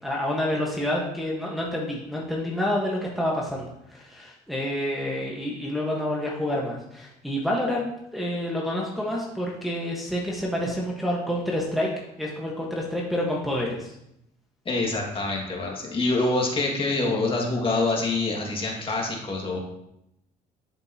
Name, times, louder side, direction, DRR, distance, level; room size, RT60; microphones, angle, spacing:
voice 1, 0.0-7.8 8.1-11.9 12.2-13.9, left 1 dB, ahead, -3 dB, 1.2 m, -28 dB
voice 2, 14.7-19.6, left 2 dB, 30° left, 0 dB, 1.9 m, -26 dB
11.0 x 5.2 x 2.8 m, 0.81 s
cardioid pair, 110°, 17 cm